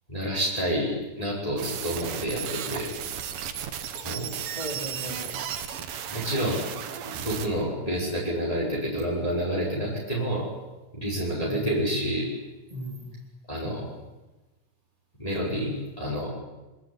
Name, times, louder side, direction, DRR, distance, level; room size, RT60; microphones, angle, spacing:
voice 1, 0.1-2.9 3.9-4.3 6.1-6.6 7.0-10.5 10.9-12.3 13.5-13.9 15.2-16.3, equal, 10° left, -4 dB, 5.7 m, -29 dB
sound 1, 1.6-7.5, right 9 dB, 85° right, 3.3 m, -34 dB
voice 2, 4.6-5.4 11.4-11.6 12.7-13.1, right 1 dB, 10° right, 2 dB, 3.8 m, -37 dB
25.0 x 19.0 x 9.9 m, 1.1 s
omnidirectional pair, 3.8 m